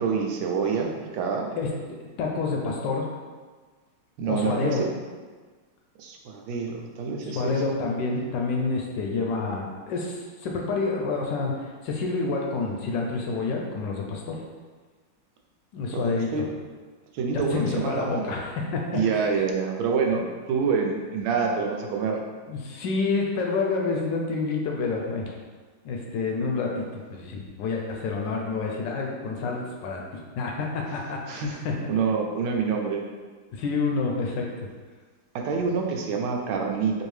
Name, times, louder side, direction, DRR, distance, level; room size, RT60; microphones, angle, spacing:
voice 1, 0.0-1.5 4.2-4.9 6.0-7.6 15.9-16.5 17.1-18.3 18.9-22.2 31.3-31.6 31.9-33.0 35.3-37.0, right 5 dB, 85° right, 2 dB, 1.4 m, -27 dB
voice 2, 2.2-3.1 4.3-4.8 7.4-14.4 15.7-16.3 17.3-19.3 22.5-25.3 25.8-31.7 33.5-34.7, left 4 dB, 75° left, 0 dB, 1.2 m, -28 dB
4.4 x 2.7 x 3.2 m, 1.4 s
omnidirectional pair, 2.2 m